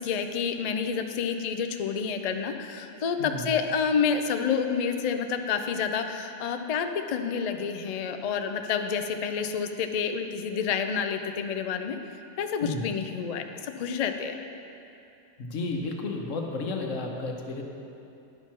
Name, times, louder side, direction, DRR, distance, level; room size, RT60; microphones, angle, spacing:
voice 1, 0.0-12.0 12.4-14.3, left 6 dB, 70° left, 6 dB, 0.3 m, -29 dB
voice 2, 3.2-3.5 12.6-12.9 15.4-17.6, left 3 dB, 85° left, 1 dB, 1.3 m, -32 dB
10.5 x 5.9 x 4.5 m, 2.7 s
omnidirectional pair, 1.3 m